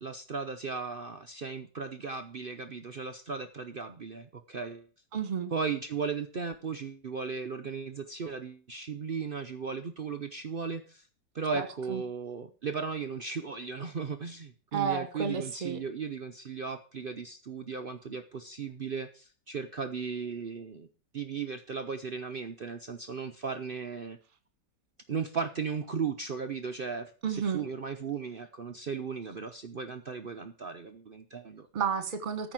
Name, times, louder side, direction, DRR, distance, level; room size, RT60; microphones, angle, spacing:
voice 1, 0.0-4.9 5.5-11.1 11.3-20.9 21.1-24.2 25.1-31.7, right 5 dB, 65° right, 7 dB, 0.5 m, -36 dB
voice 2, 5.1-5.5 11.5-12.0 14.7-15.8 27.2-27.6 31.7-32.5, right 6 dB, 30° right, 9 dB, 1.3 m, -32 dB
13.5 x 5.0 x 7.5 m, 0.40 s
omnidirectional pair, 1.9 m